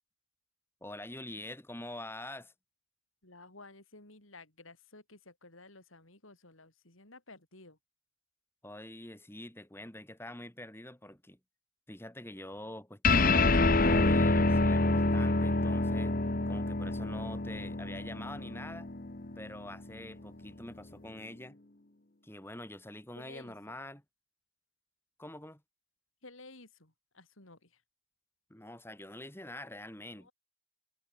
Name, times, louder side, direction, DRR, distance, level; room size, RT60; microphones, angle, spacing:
voice 1, 0.8-2.5 8.6-11.4 11.9-16.2 16.5-18.9 19.4-21.6 22.2-24.0 25.2-25.6 28.5-30.3, left 1 dB, 10° left, 3.1 m, -45 dB
voice 2, 3.2-7.8 23.2-23.6 26.2-27.7 30.1-30.3, left 2 dB, 75° left, 5.2 m, -54 dB
sound 1, 13.0-19.8, left 2 dB, 40° left, 1.3 m, -27 dB
head